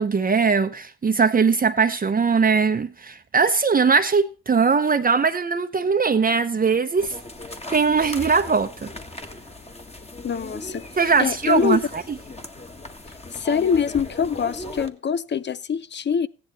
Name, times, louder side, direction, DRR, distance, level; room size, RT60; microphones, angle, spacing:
voice 1, 0.0-7.1 7.7-8.9 11.0-11.8, right 5 dB, 30° right, 0.9 m, -20 dB
sound 1, 7.0-14.9, left 2 dB, 20° left, 1.8 m, -38 dB
voice 2, 10.2-10.8 11.2-11.8 13.3-16.3, left 7 dB, 35° left, 0.7 m, -24 dB
15.5 x 10.0 x 4.2 m
cardioid pair, 90°, 30 cm